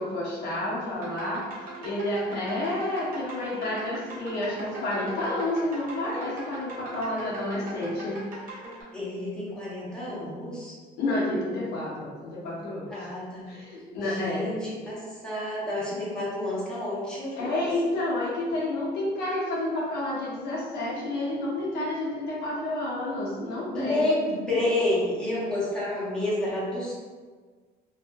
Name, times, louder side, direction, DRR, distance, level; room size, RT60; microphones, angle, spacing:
voice 1, 0.0-1.5 1.8-8.2 11.0-13.1 13.5-14.5 17.4-24.1, left 1 dB, 80° left, -6 dB, 0.8 m, -30 dB
sound 1, 0.9-8.8, right 1 dB, 55° right, 1.0 m, -41 dB
voice 2, 8.9-10.7 12.9-13.6 14.0-17.7 23.7-26.9, left 1 dB, 5° left, -9 dB, 0.9 m, -29 dB
2.6 x 2.4 x 2.2 m, 1.5 s
cardioid pair, 110°, 17 cm